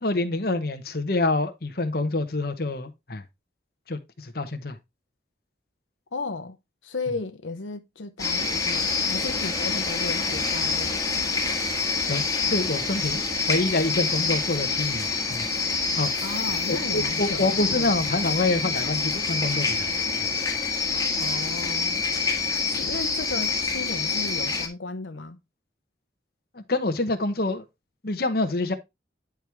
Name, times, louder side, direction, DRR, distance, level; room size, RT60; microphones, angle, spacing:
voice 1, 0.0-3.2 3.9-4.8 12.1-15.5 16.0-16.1 16.7-20.0 26.5-27.6 28.0-28.7, left 2 dB, 55° left, 1.0 m, -26 dB
voice 2, 6.1-6.6 6.8-11.4 16.2-17.9 21.2-22.0 22.7-25.4, left 3 dB, 85° left, 0.8 m, -35 dB
sound 1, 8.2-24.7, left 4 dB, 20° left, 1.5 m, -26 dB
10.0 x 4.7 x 3.4 m
head